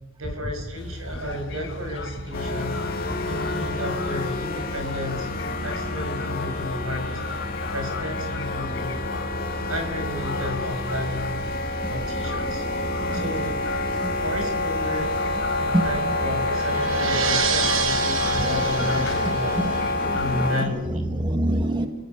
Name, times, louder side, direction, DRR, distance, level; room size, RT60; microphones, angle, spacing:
voice 1, 0.2-2.9 3.2-5.3 5.6-7.2 7.7-9.0 9.7-11.4 11.9-12.6 13.1-13.6 14.1-15.1 15.6-19.6 20.1-21.3, left 1 dB, 85° right, 5 dB, 6.4 m, -32 dB
sound 1, 0.8-20.5, left 1 dB, 65° left, 4.4 m, -35 dB
sound 2, 2.3-20.7, left 2 dB, 45° left, 3.2 m, -28 dB
sound 3, 15.1-19.9, right 6 dB, 70° right, 1.5 m, -29 dB
voice 2, 18.4-18.9 19.5-21.9, right 1 dB, 20° right, 5 dB, 1.7 m, -27 dB
29.5 x 17.5 x 9.8 m, 1.2 s
head